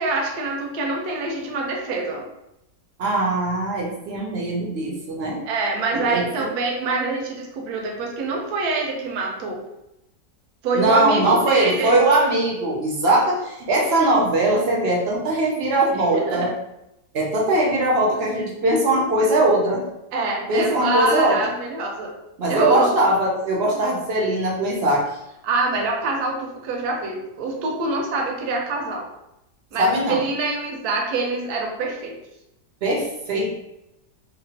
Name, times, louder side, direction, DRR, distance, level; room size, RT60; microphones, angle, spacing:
voice 1, 0.0-2.3 5.5-9.6 10.6-12.0 15.9-16.5 20.1-22.1 22.5-23.0 25.4-29.1 29.7-32.2, right 3 dB, 80° right, 0 dB, 1.1 m, -25 dB
voice 2, 3.0-5.4 5.9-6.2 10.7-16.5 17.1-19.8 20.5-21.5 22.4-25.0 29.8-30.2 32.8-33.5, right 1 dB, 60° right, -2 dB, 0.6 m, -21 dB
2.9 x 2.2 x 2.7 m, 0.87 s
omnidirectional pair, 1.6 m